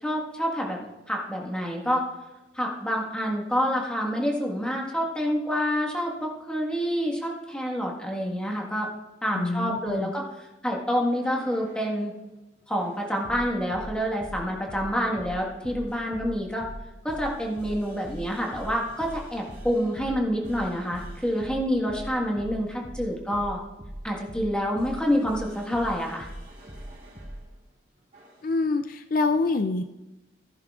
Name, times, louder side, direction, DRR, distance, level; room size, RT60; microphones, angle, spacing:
voice 1, 0.0-2.1 2.5-8.9 9.2-12.1 12.7-16.7 17.0-23.6 24.0-26.3, equal, 5° left, -1 dB, 1.5 m, -27 dB
voice 2, 9.3-10.1 28.4-29.8, left 3 dB, 45° left, 9 dB, 0.3 m, -26 dB
sound 1, 11.1-12.1 12.8-27.4 28.1-28.5, right 1 dB, 40° right, 2.3 m, -42 dB
15.0 x 10.5 x 2.4 m, 1.1 s
head